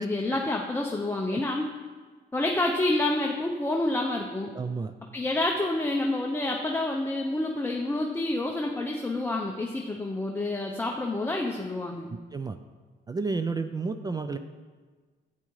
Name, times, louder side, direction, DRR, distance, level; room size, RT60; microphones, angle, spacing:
voice 1, 0.0-1.7 2.3-4.5 5.1-12.1, left 2 dB, 10° left, 0 dB, 0.6 m, -28 dB
voice 2, 4.5-4.9 12.3-12.6 13.1-14.4, right 4 dB, 20° right, 9 dB, 0.3 m, -31 dB
8.7 x 8.6 x 3.1 m, 1.5 s
cardioid pair, 90°, 20 cm